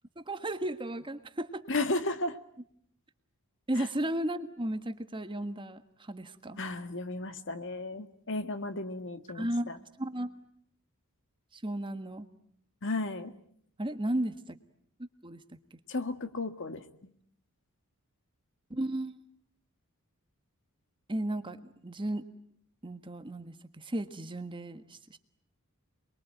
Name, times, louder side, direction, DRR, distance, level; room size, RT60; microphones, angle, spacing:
voice 1, 0.3-1.6 3.7-5.8 6.1-6.6 9.3-9.7 10.0-10.3 11.5-12.3 13.8-14.4 15.2-15.4 18.7-19.2 21.1-22.2 22.8-25.2, right 1 dB, 20° right, 9 dB, 1.5 m, -34 dB
voice 2, 1.7-2.4 3.8-3.9 6.6-9.8 12.8-13.3 15.9-17.1, left 2 dB, 60° left, 9 dB, 1.8 m, -34 dB
28.5 x 22.0 x 9.2 m, 0.68 s
head